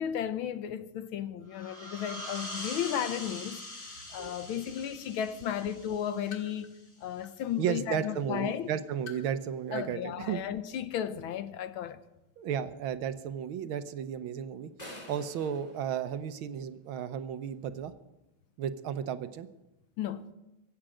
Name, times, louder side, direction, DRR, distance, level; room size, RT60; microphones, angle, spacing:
voice 1, 0.0-3.6 4.1-6.8 7.0-8.7 9.7-12.0 20.0-20.3, left 9 dB, 80° left, 1.6 m, -34 dB
sound 1, 1.5-6.9, left 1 dB, 35° left, 3.2 m, -43 dB
voice 2, 4.2-4.6 7.6-10.4 12.4-14.7 15.1-17.9 18.6-19.5, right 8 dB, 75° right, 1.6 m, -34 dB
Wooden Windplay Mobile, 4.6-5.0 5.5-7.5 8.0-8.2 8.7-9.4 9.7-9.9 10.2-10.3, left 5 dB, 55° left, 2.3 m, -50 dB
sound 2, 14.8-16.9, equal, 20° left, 2.6 m, -49 dB
23.0 x 8.8 x 5.0 m
omnidirectional pair, 2.3 m